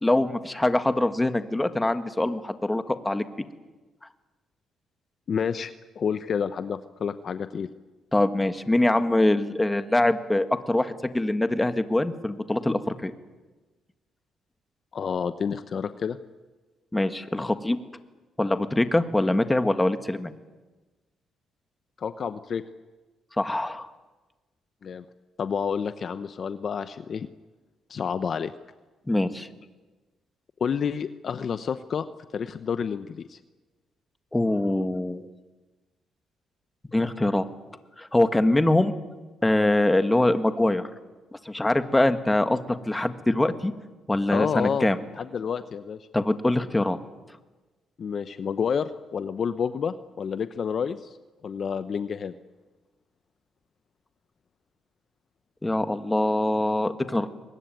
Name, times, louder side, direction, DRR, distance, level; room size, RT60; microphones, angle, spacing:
voice 1, 0.0-3.3 8.1-13.1 16.9-17.8 18.4-20.3 23.4-23.9 29.1-29.5 34.3-35.3 36.9-37.5 38.0-38.9 39.4-40.9 41.5-43.7 44.1-45.0 46.1-47.0 55.6-57.3, left 1 dB, 15° left, 9 dB, 1.7 m, -23 dB
voice 2, 5.3-7.7 14.9-16.2 22.0-22.6 24.8-25.0 25.4-27.3 27.9-28.5 30.6-32.1 32.3-33.4 44.3-44.9 45.2-46.0 48.0-51.2 51.4-52.3, left 6 dB, 50° left, 11 dB, 0.9 m, -29 dB
23.0 x 21.0 x 9.3 m, 1.2 s
cardioid pair, 90°, 0 cm